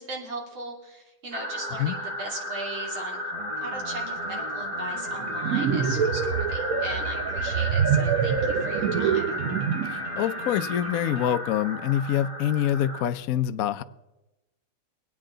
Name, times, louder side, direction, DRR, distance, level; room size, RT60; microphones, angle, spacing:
voice 1, 0.0-3.2 3.6-9.4, right 2 dB, 75° right, 3.5 m, -38 dB
sound 1, 1.3-13.0, left 1 dB, 25° right, 1.9 m, -33 dB
sound 2, 3.3-11.4, right 3 dB, 45° right, 0.4 m, -42 dB
sound 3, 5.2-10.0, right 7 dB, 60° right, 1.0 m, -26 dB
voice 2, 9.9-13.8, left 11 dB, 85° left, 0.7 m, -26 dB
24.0 x 8.7 x 3.8 m
omnidirectional pair, 2.2 m